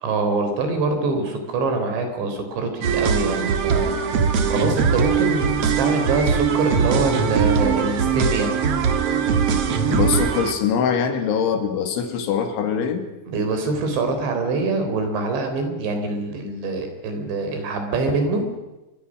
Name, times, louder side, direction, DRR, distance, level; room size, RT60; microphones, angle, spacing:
voice 1, 0.0-4.0 4.5-8.5 13.3-18.4, right 3 dB, 70° right, 6 dB, 6.1 m, -24 dB
sound 1, 2.8-10.5, right 6 dB, 90° right, 1.3 m, -21 dB
voice 2, 9.9-13.0, left 7 dB, 80° left, 6 dB, 4.7 m, -23 dB
26.5 x 23.5 x 6.4 m, 1.1 s
omnidirectional pair, 5.4 m